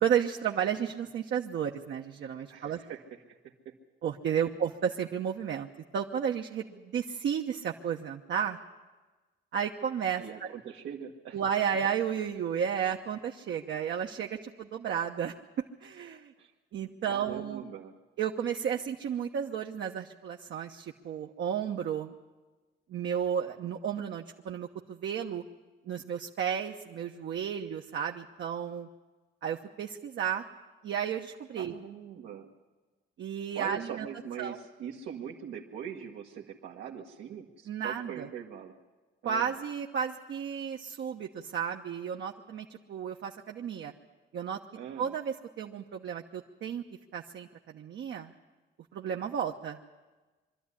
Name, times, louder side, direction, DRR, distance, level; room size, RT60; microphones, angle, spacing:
voice 1, 0.0-2.8 4.0-5.7 5.9-8.6 9.5-10.5 11.3-16.3 16.7-17.6 18.2-22.1 22.9-25.4 25.9-28.9 29.4-30.4 30.8-31.7 33.2-34.1 34.4-34.6 37.7-38.3 39.2-43.9 44.3-44.6 45.0-46.8 47.1-47.5 47.7-48.3 48.9-49.8, right 8 dB, 65° right, 1 dB, 1.0 m, -33 dB
voice 2, 2.5-3.0 3.3-3.4 3.6-3.7 4.3-4.5 10.2-11.4 16.4-16.5 17.1-17.9 31.5-32.5 33.5-38.7 39.2-39.5 44.7-45.2, right 8 dB, 90° right, -2 dB, 1.5 m, -42 dB
23.5 x 12.5 x 9.9 m, 1.3 s
cardioid pair, 90°, 20 cm